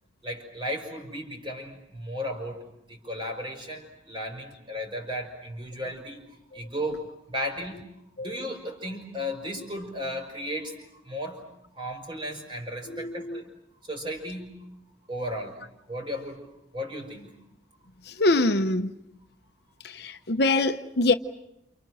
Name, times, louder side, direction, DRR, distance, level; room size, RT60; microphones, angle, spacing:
voice 1, 0.2-6.2 6.5-7.8 8.2-10.7 11.0-11.5 11.7-13.4 13.8-14.7 15.1-15.6 15.9-16.5 16.7-17.3, equal, 25° right, 5.5 m, -35 dB
voice 2, 12.9-13.4 18.0-18.9 19.8-21.1, left 2 dB, 60° left, 0.9 m, -25 dB
29.5 x 29.0 x 6.4 m
head